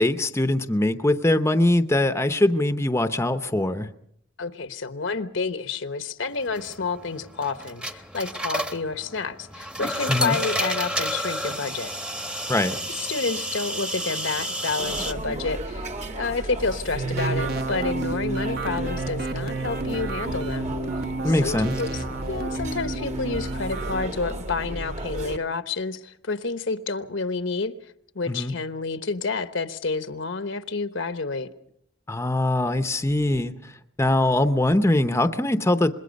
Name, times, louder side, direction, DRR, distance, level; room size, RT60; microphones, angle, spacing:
voice 1, 0.0-3.9 10.1-10.4 12.5-12.8 21.2-21.7 28.3-28.5 32.1-33.5 34.0-35.9, left 1 dB, 15° left, 9 dB, 0.7 m, -22 dB
voice 2, 4.4-11.9 13.0-20.7 21.4-27.7 28.1-31.5, left 4 dB, 70° left, 11 dB, 1.1 m, -29 dB
sound 1, 6.4-15.1, equal, 5° right, 1.0 m, -31 dB
sound 2, 14.8-25.4, right 1 dB, 35° right, 1.4 m, -34 dB
sound 3, 16.9-24.1, right 3 dB, 50° right, 1.2 m, -30 dB
26.0 x 21.5 x 5.3 m, 0.71 s
head